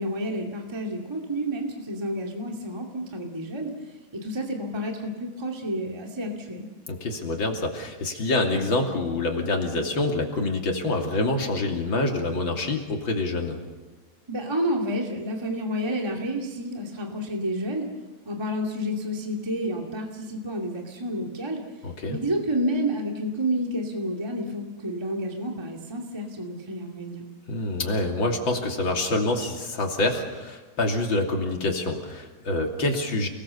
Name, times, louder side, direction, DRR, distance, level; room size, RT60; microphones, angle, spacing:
voice 1, 0.0-3.7 4.1-6.7 14.3-17.9 18.2-21.6 22.1-27.3, equal, 15° right, 1 dB, 0.9 m, -30 dB
voice 2, 6.9-13.6 21.8-22.2 27.5-33.3, left 2 dB, 30° left, 1 dB, 2.9 m, -26 dB
29.5 x 20.5 x 7.0 m, 1.2 s
omnidirectional pair, 4.9 m